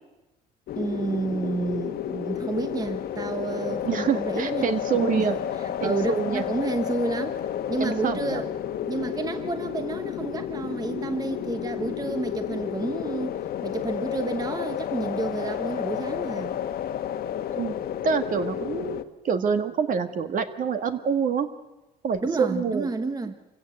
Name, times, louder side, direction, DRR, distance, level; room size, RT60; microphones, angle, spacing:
sound 1, 0.7-19.0, left 10 dB, 65° left, 1.3 m, -31 dB
voice 1, 0.8-5.3 5.8-7.4 7.7-8.5 8.8-13.4 13.6-16.6 22.2-23.4, right 3 dB, 20° right, 8 dB, 1.1 m, -30 dB
voice 2, 3.8-5.4 5.8-6.4 7.8-8.4 17.5-17.7 18.0-21.5 22.0-22.9, right 6 dB, 50° right, 8 dB, 2.0 m, -26 dB
27.0 x 16.5 x 7.9 m, 1.1 s
cardioid pair, 110°, 17 cm